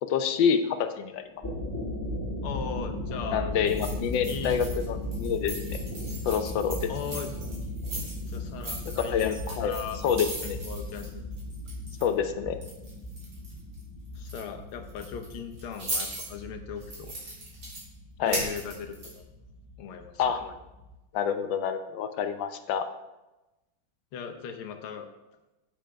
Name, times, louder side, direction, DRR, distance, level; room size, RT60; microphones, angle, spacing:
voice 1, 0.0-1.2 3.3-5.8 6.2-6.9 8.9-9.8 10.0-10.6 12.0-12.6 18.2-18.4 20.2-20.6 21.1-22.9, left 7 dB, 70° left, 8 dB, 1.3 m, -27 dB
sound 1, 1.2-20.9, left 1 dB, 10° left, 2.1 m, -37 dB
voice 2, 2.4-3.5 4.3-4.6 6.9-7.3 8.3-10.0 10.4-11.2 14.1-17.1 18.2-19.2 19.8-20.2 24.1-25.1, left 7 dB, 90° left, 6 dB, 1.8 m, -38 dB
sound 2, 3.7-4.9 5.1-12.2 12.6-13.8 14.1-14.4 14.9-16.3 16.8-17.8 18.3-19.2, right 1 dB, 80° right, 4.2 m, -38 dB
10.0 x 9.0 x 3.4 m, 1.0 s
omnidirectional pair, 2.3 m